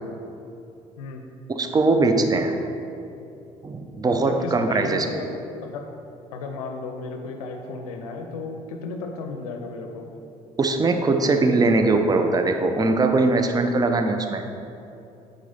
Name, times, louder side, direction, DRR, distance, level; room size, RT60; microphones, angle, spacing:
voice 1, 1.0-1.3 4.1-5.3 5.6-5.9 6.3-10.1, left 4 dB, 70° left, 4 dB, 0.6 m, -34 dB
voice 2, 1.5-2.6 3.6-5.2 10.6-14.4, right 3 dB, 20° right, 6 dB, 0.6 m, -21 dB
9.2 x 3.9 x 3.9 m, 2.7 s
figure-of-eight pair, 50°, 19 cm